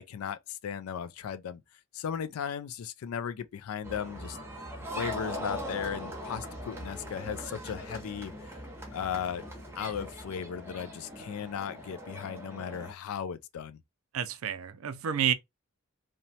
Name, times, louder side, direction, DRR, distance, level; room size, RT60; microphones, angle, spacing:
voice 1, 0.0-1.6 1.9-4.4 4.9-8.3 8.9-9.4 9.8-13.8, left 8 dB, 80° left, 0.3 m, -36 dB
sound 1, 3.8-12.9, equal, 10° right, 0.7 m, -40 dB
voice 2, 14.1-15.3, right 8 dB, 70° right, 0.4 m, -29 dB
2.8 x 2.1 x 2.7 m
head